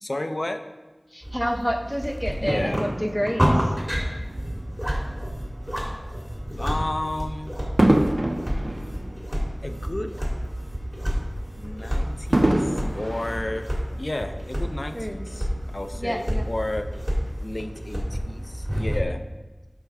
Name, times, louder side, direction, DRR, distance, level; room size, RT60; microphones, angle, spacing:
voice 1, 0.0-0.6 2.4-2.8 6.6-7.5 9.6-10.1 11.6-13.7 14.0-15.5 15.7-16.9 17.4-19.2, left 1 dB, 65° left, 8 dB, 0.6 m, -32 dB
voice 2, 1.1-3.7 14.9-15.2 15.9-16.4, equal, ahead, 4 dB, 0.9 m, -28 dB
sound 1, 1.2-19.0, equal, 20° right, 2.1 m, -29 dB
Fireworks, 2.5-5.0 5.7-5.9 7.8-10.3 10.7-10.8 12.3-14.2 14.9-15.0, right 1 dB, 55° right, 0.6 m, -26 dB
11.0 x 4.6 x 3.6 m, 1.2 s
wide cardioid pair, 40°, 0 cm